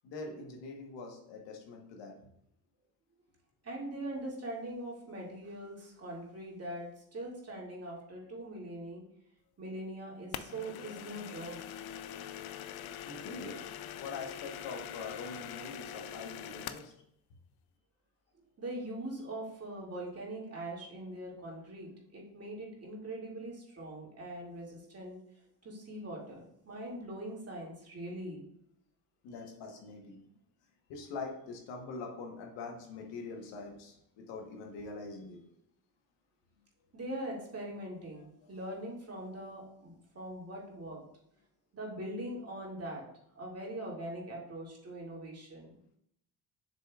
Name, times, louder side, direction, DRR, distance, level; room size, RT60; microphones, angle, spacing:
voice 1, 0.0-2.3 13.0-16.9 29.2-30.3 30.9-35.4 38.2-38.5, left 4 dB, 80° left, 2 dB, 1.3 m, -44 dB
voice 2, 3.6-9.0 9.6-11.6 18.6-25.2 25.6-28.4 36.9-41.1 41.7-43.0 43.4-45.7, right 1 dB, 35° right, -3 dB, 2.3 m, -42 dB
sound 1, 10.3-16.9, left 10 dB, 60° left, 0.5 m, -43 dB
7.5 x 6.3 x 2.4 m, 0.74 s
supercardioid pair, 85°, 42 cm